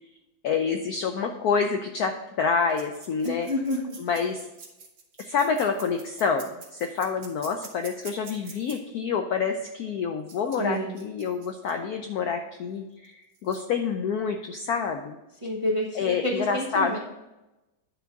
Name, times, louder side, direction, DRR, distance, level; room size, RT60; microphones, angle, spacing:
voice 1, 0.4-3.5 4.0-4.4 5.2-15.1 15.9-17.0, left 5 dB, 70° left, 5 dB, 0.9 m, -27 dB
sound 1, 2.7-8.8 10.3-11.7 13.0-13.1 13.3-13.6, right 5 dB, 80° right, 2.1 m, -46 dB
voice 2, 3.2-4.0 10.6-11.0 15.4-17.0, left 1 dB, 25° right, -2 dB, 0.8 m, -29 dB
10.0 x 3.5 x 5.8 m, 0.99 s
omnidirectional pair, 2.1 m